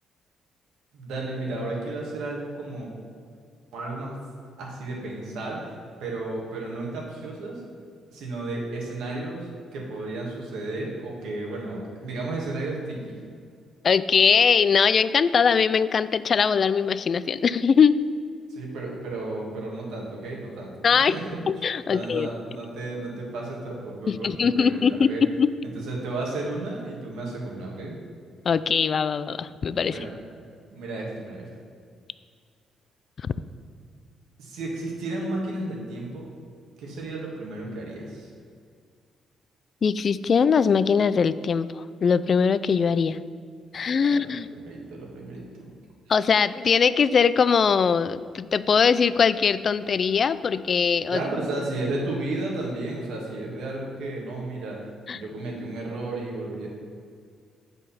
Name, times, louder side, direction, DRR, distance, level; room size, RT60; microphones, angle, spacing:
voice 1, 0.9-2.9 3.7-4.2 4.6-5.7 6.0-7.6 8.1-13.2 18.5-21.4 21.9-25.2 25.6-28.0 29.9-30.1 30.7-31.5 34.4-36.3 36.8-38.3 44.1-45.7 51.1-54.8 55.1-56.7, right 2 dB, 85° right, -2 dB, 2.1 m, -33 dB
voice 2, 13.8-18.0 20.8-21.1 21.5-22.3 24.1-25.5 28.4-30.0 33.2-33.3 39.8-43.2 43.7-44.5 46.1-51.2 55.1-55.2, left 6 dB, 50° left, 15 dB, 0.3 m, -21 dB
8.4 x 5.2 x 5.8 m, 2.1 s
cardioid pair, 90°, 0 cm